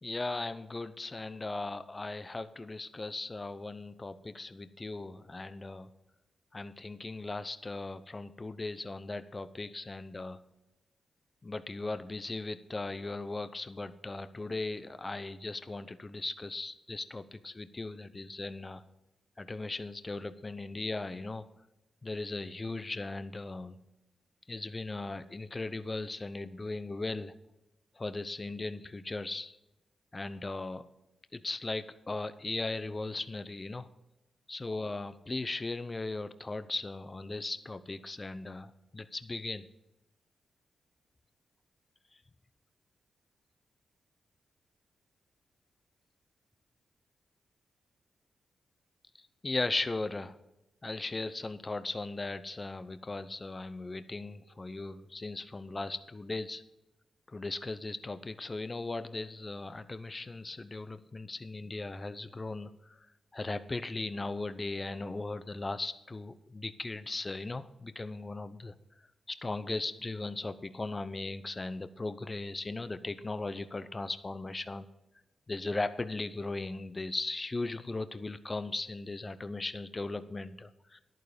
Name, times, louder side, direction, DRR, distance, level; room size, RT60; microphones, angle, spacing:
voice 1, 0.0-5.9 6.5-10.4 11.4-18.8 19.4-21.5 22.0-23.8 24.5-27.3 28.0-29.6 30.1-30.9 31.3-33.9 34.5-39.7 49.2-50.4 50.8-56.6 57.3-63.0 63.3-68.7 69.3-74.9 75.5-81.0, left 2 dB, 35° left, 13 dB, 0.8 m, -38 dB
11.0 x 9.2 x 5.2 m, 0.91 s
supercardioid pair, 50°, 0 cm